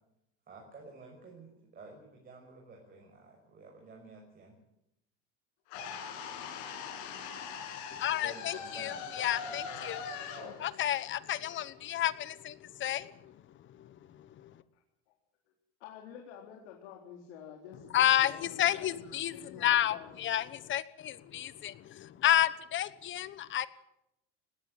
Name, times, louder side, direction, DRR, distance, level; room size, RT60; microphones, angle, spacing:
voice 1, 0.5-4.6 8.1-9.6, right 3 dB, 25° right, 1 dB, 5.9 m, -52 dB
sound 1, 5.7-11.8, left 6 dB, 65° left, 7.3 m, -42 dB
voice 2, 7.9-10.0 10.3-13.3 13.8-13.9 14.4-14.5 17.9-23.7, left 12 dB, 35° left, 15 dB, 1.2 m, -31 dB
voice 3, 15.8-19.0 19.3-20.1, left 8 dB, 90° left, 0 dB, 4.0 m, -49 dB
19.5 x 16.5 x 9.2 m, 0.85 s
supercardioid pair, 140°, 33 cm